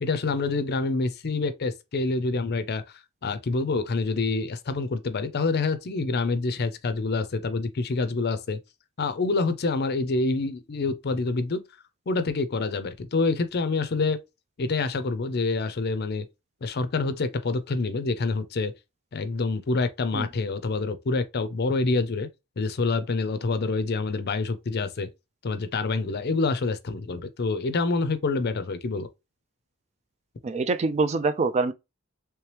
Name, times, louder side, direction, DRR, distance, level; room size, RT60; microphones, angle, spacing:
voice 1, 0.0-2.8 3.2-8.6 9.0-11.6 12.1-14.2 14.6-16.3 16.6-18.7 19.1-22.3 22.6-25.1 25.4-29.1, left 3 dB, 45° left, 0.5 m, -27 dB
voice 2, 30.4-31.7, right 3 dB, 30° right, 0.3 m, -25 dB
3.3 x 3.0 x 3.2 m
head